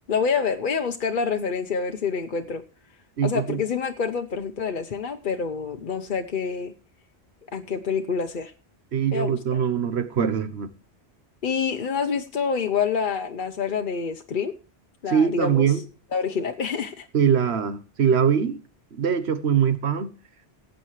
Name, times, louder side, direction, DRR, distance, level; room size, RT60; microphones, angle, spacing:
voice 1, 0.1-2.6 3.2-6.7 7.5-8.5 9.1-9.6 11.4-14.5 15.0-15.8 16.1-17.1, left 6 dB, 55° left, 0.9 m, -27 dB
voice 2, 3.2-3.6 8.9-10.7 15.1-15.8 17.1-18.6 19.0-20.1, right 7 dB, 80° right, 1.3 m, -22 dB
18.0 x 8.3 x 3.2 m
omnidirectional pair, 1.1 m